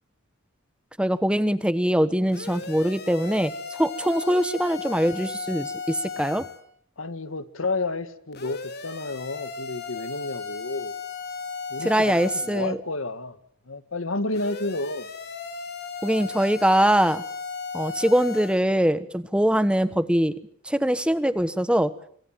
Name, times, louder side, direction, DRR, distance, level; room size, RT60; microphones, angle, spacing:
voice 1, 1.0-6.5 11.8-12.8 16.0-17.2 17.7-20.3 20.6-21.9, equal, 5° right, 14 dB, 1.1 m, -22 dB
sound 1, 2.3-6.6 8.3-12.6 14.3-18.6, left 5 dB, 55° left, 4.1 m, -36 dB
voice 2, 7.0-10.9 11.7-13.4 13.7-15.1, left 2 dB, 80° left, 13 dB, 1.9 m, -31 dB
26.5 x 23.0 x 7.5 m, 0.62 s
head